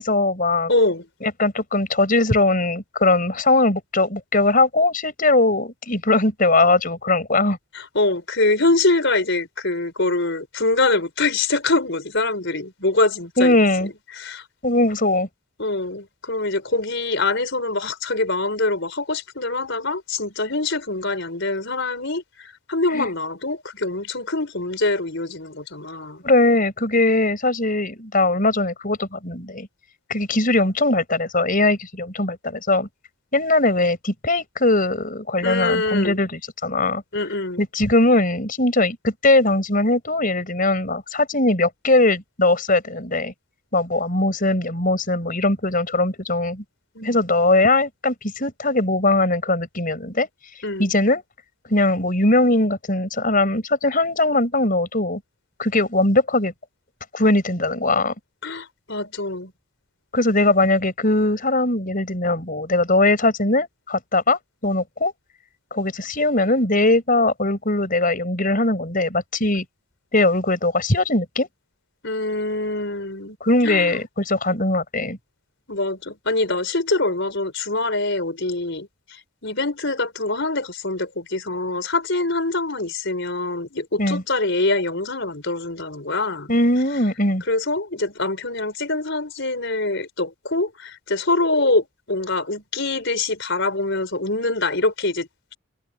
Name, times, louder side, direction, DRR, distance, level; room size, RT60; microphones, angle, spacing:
voice 1, 0.0-0.7 1.2-7.6 13.4-13.9 14.6-15.3 22.9-23.1 26.2-29.7 30.1-32.9 33.3-37.0 37.6-43.3 43.7-46.6 47.0-50.3 50.8-51.2 51.7-55.2 55.6-56.5 57.1-58.1 60.1-65.1 65.7-69.6 70.1-71.5 73.4-75.2 84.0-84.2 86.5-87.4, left 2 dB, 40° left, 6.3 m, -20 dB
voice 2, 0.7-1.0 7.7-13.6 14.2-14.4 15.6-26.2 35.4-36.2 37.1-37.6 47.0-47.2 50.6-50.9 58.4-59.5 72.0-73.4 73.6-74.0 75.7-86.5 87.5-95.5, left 2 dB, 55° left, 5.7 m, -24 dB
head